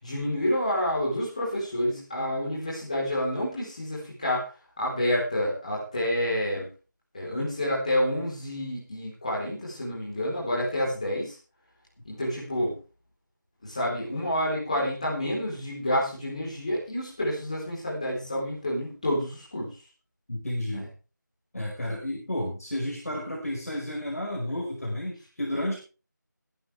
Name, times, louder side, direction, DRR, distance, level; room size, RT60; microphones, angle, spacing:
voice 1, 0.0-4.5 4.8-6.7 7.1-11.4 12.0-12.7 13.6-19.7 20.7-20.9, left 1 dB, 20° left, -6 dB, 4.0 m, -28 dB
voice 2, 20.3-20.9 21.5-25.8, left 1 dB, 50° left, -2 dB, 5.2 m, -31 dB
20.0 x 11.0 x 3.4 m, 0.34 s
figure-of-eight pair, 175°, 10 cm